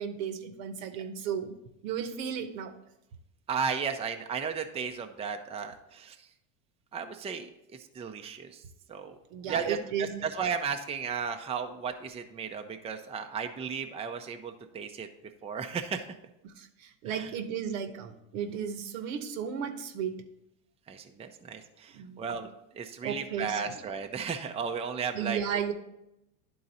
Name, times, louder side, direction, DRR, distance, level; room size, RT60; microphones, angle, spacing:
voice 1, 0.0-1.5 1.8-2.7 9.3-10.2 16.4-20.2 21.9-22.4 23.0-23.8 25.1-25.7, right 8 dB, 80° right, 8 dB, 1.0 m, -34 dB
voice 2, 3.5-6.2 6.9-7.5 7.9-8.6 8.9-9.1 9.5-15.1 15.4-16.1 17.1-17.3 20.9-25.7, right 6 dB, 15° right, 5 dB, 0.5 m, -35 dB
10.5 x 3.9 x 4.1 m, 0.87 s
supercardioid pair, 110°, 40 cm